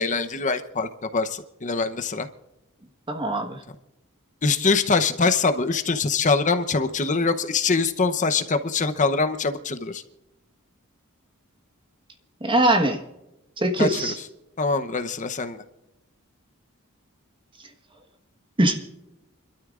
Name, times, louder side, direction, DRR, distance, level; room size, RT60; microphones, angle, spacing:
voice 1, 0.0-2.3 4.4-10.0 13.8-14.1 14.6-15.6, left 4 dB, 35° left, 9 dB, 0.8 m, -23 dB
voice 2, 3.1-3.6 12.4-13.0 13.6-14.2 18.6-18.7, right 1 dB, 25° right, 5 dB, 1.4 m, -21 dB
29.5 x 12.5 x 2.5 m, 0.93 s
head